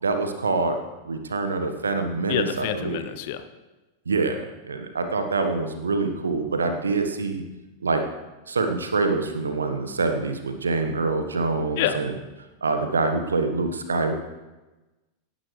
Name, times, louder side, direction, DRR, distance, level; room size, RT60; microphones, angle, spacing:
voice 1, 0.0-0.8 1.0-3.0 4.1-4.4 4.7-7.4 7.8-8.0 8.5-12.1 12.6-14.2, right 3 dB, 75° right, 7 dB, 1.3 m, -25 dB
voice 2, 2.3-3.4 11.8-12.0, left 10 dB, 50° left, 10 dB, 0.9 m, -27 dB
17.5 x 11.0 x 3.3 m, 1.1 s
figure-of-eight pair, 90°, 0 cm